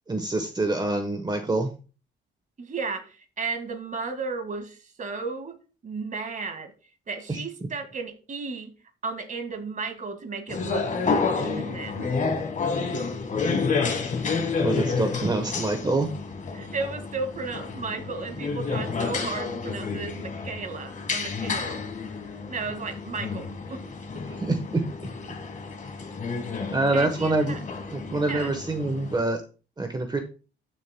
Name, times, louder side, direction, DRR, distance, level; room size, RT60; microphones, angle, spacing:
voice 1, 0.1-1.7 7.3-7.4 14.6-16.1 24.4-25.1 26.7-27.6 27.9-29.4 29.8-30.2, right 2 dB, 20° right, 6 dB, 1.1 m, -26 dB
voice 2, 2.6-6.7 7.1-8.7 9.0-10.8 11.3-12.1 16.5-21.8 22.5-23.8 26.9-27.6 28.3-28.5, right 4 dB, 40° right, 6 dB, 1.9 m, -34 dB
sound 1, 10.5-29.2, left 4 dB, 40° left, 1.7 m, -30 dB
13.5 x 6.9 x 2.2 m, 0.35 s
cardioid pair, 90°, 20 cm